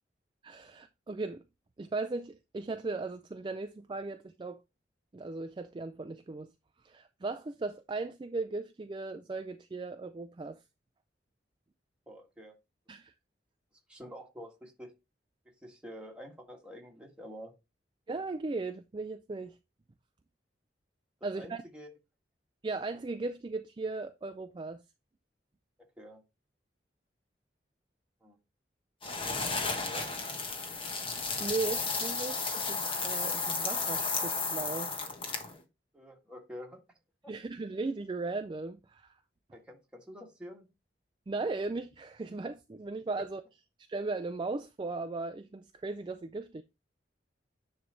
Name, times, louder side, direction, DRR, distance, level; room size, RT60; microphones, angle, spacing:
voice 1, 0.4-1.4 1.8-4.6 5.1-6.5 6.8-10.6 12.9-13.1 18.1-19.6 21.2-21.6 22.6-24.8 31.4-35.0 37.3-39.1 41.3-43.4 43.9-46.6, right 3 dB, 25° right, 0.4 m, -37 dB
voice 2, 12.1-12.5 13.9-14.9 15.6-17.5 21.3-21.9 26.0-26.2 28.2-28.4 29.8-30.2 35.9-36.8 37.2-37.3 39.5-40.7, equal, 5° right, 1.7 m, -48 dB
sound 1, 29.0-35.6, left 4 dB, 30° left, 1.2 m, -33 dB
9.9 x 3.3 x 3.9 m
head